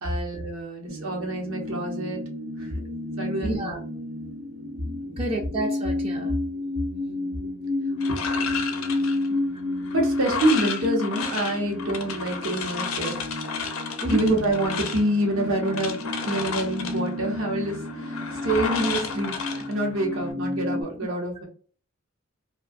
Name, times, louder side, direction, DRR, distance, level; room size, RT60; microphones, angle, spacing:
voice 1, 0.0-2.2 2.6-2.7 3.2-3.8 9.9-13.3 14.1-21.5, right 1 dB, 85° right, 0 dB, 0.9 m, -27 dB
sound 1, 0.9-20.8, left 2 dB, 55° right, 0.8 m, -31 dB
voice 2, 3.4-3.8 5.2-6.3 14.0-14.2, right 1 dB, 30° right, 1 dB, 0.4 m, -28 dB
sound 2, 8.0-20.3, left 5 dB, 80° left, 0.5 m, -33 dB
2.6 x 2.3 x 2.3 m, 0.42 s
head